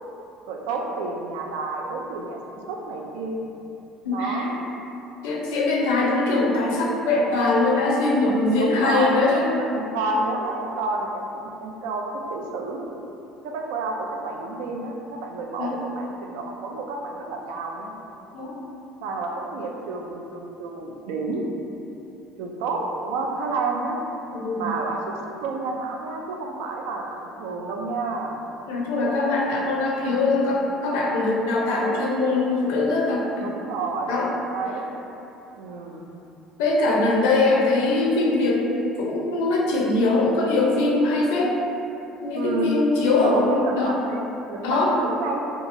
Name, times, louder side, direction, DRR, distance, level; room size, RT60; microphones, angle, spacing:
voice 1, 0.5-3.5 4.1-4.6 8.6-12.9 13.4-17.9 19.0-21.4 22.4-24.0 24.5-25.0 25.4-28.4 30.1-30.3 33.4-34.1 34.5-34.9 35.6-36.0 42.3-42.7 43.1-45.4, right 3 dB, 85° right, 1 dB, 0.3 m, -30 dB
voice 2, 4.0-4.4 5.2-9.5 15.6-15.8 18.3-18.6 24.3-24.7 28.7-33.5 34.1-34.3 36.6-38.7 39.0-41.5 42.2-43.9 44.6-44.9, left 2 dB, 85° left, -3 dB, 0.5 m, -22 dB
2.8 x 2.3 x 2.5 m, 2.8 s
supercardioid pair, 100°, 0 cm